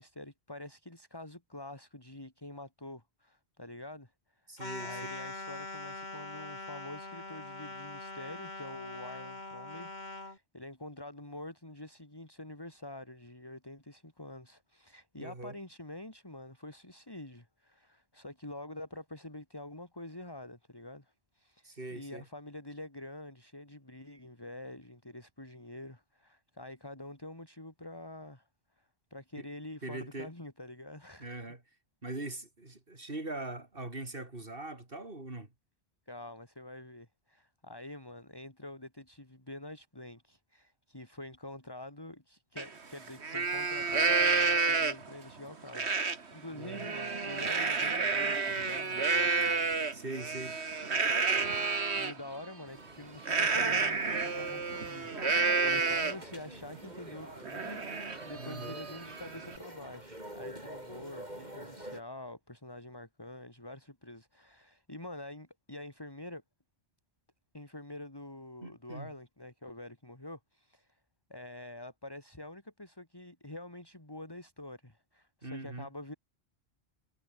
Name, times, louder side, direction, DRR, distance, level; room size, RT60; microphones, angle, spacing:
voice 1, 0.0-4.5 4.8-28.5 28.8-31.4 36.1-49.6 51.5-66.4 67.5-71.0 71.3-76.1, left 1 dB, 20° left, 3.2 m, -47 dB
voice 2, 4.5-5.1 15.2-15.6 21.6-22.2 29.4-29.5 29.8-30.3 31.2-31.6 32.0-35.5 46.5-46.9 49.9-50.6 58.3-58.8 68.6-69.1 75.4-75.9, right 2 dB, 55° right, 4.1 m, -41 dB
sound 1, 4.6-10.4, left 2 dB, 45° left, 3.3 m, -43 dB
Livestock farm animals working animals, 42.6-42.7 43.1-45.2 45.7-46.2 46.6-52.1 53.2-56.3 56.8-56.9 57.2-59.6, right 4 dB, 85° right, 2.2 m, -30 dB
sound 2, 52.7-62.0, right 1 dB, 40° right, 8.2 m, -48 dB
omnidirectional pair, 1.1 m